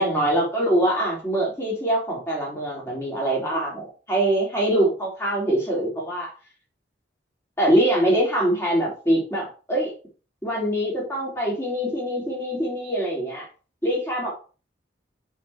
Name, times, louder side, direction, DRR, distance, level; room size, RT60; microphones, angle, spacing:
voice 1, 0.0-6.3 7.6-9.9 10.4-13.5 13.8-14.3, right 1 dB, 15° left, -4 dB, 4.3 m, -23 dB
7.2 x 6.7 x 4.5 m, 0.35 s
head